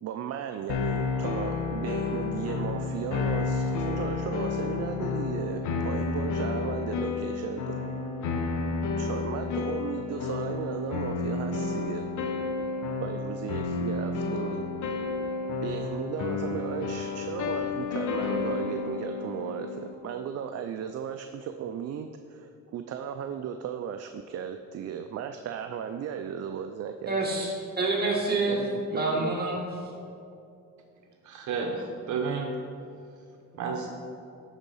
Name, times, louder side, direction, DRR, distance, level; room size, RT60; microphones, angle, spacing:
voice 1, 0.0-7.8 9.0-12.0 13.0-14.7 15.6-27.3 28.5-29.4, right 8 dB, 55° right, 7 dB, 0.5 m, -36 dB
sound 1, 0.7-19.9, left 4 dB, 75° left, 0.9 m, -31 dB
voice 2, 27.1-28.6 28.9-29.7, right 2 dB, 30° right, -2 dB, 2.0 m, -27 dB
voice 3, 31.2-32.5 33.5-33.9, right 5 dB, 75° right, 3 dB, 0.8 m, -31 dB
10.0 x 4.1 x 5.4 m, 2.6 s
cardioid pair, 90°, 30 cm